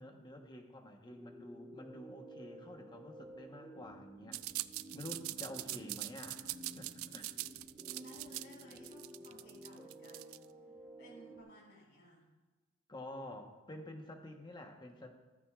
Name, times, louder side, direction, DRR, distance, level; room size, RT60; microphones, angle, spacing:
voice 1, 0.0-4.4 4.9-7.4 12.9-15.1, left 1 dB, 20° left, 3 dB, 1.1 m, -49 dB
sound 1, 1.1-11.4, right 1 dB, ahead, 1.7 m, -53 dB
sound 2, 4.3-10.5, right 17 dB, 85° right, 0.3 m, -42 dB
voice 2, 7.8-10.4 11.0-12.2, equal, 60° left, -3 dB, 4.1 m, -56 dB
14.0 x 13.0 x 2.4 m, 1.2 s
head